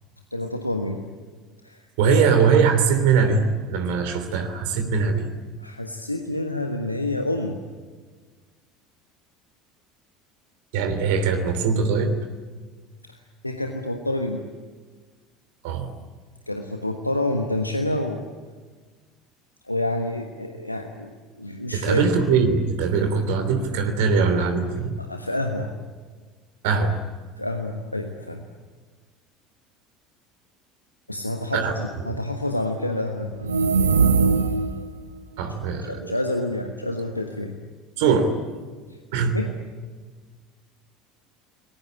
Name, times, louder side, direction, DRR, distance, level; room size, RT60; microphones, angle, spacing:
voice 1, 0.3-1.0 1.6-2.2 5.6-7.6 13.1-13.2 13.4-14.5 16.5-18.3 19.7-21.1 21.4-22.1 25.0-25.7 27.4-28.5 31.1-33.3 35.9-37.5 39.3-39.5, left 1 dB, 90° left, 4 dB, 1.3 m, -28 dB
voice 2, 2.0-5.3 10.7-12.1 15.6-15.9 21.7-25.0 26.6-27.0 31.5-31.7 32.0-32.2 35.4-36.0 38.0-38.3 39.1-39.3, right 5 dB, 60° right, 7 dB, 3.1 m, -21 dB
sound 1, 33.4-34.9, right 5 dB, 80° right, 1.1 m, -20 dB
29.5 x 21.0 x 8.8 m, 1.4 s
figure-of-eight pair, 65°, 0 cm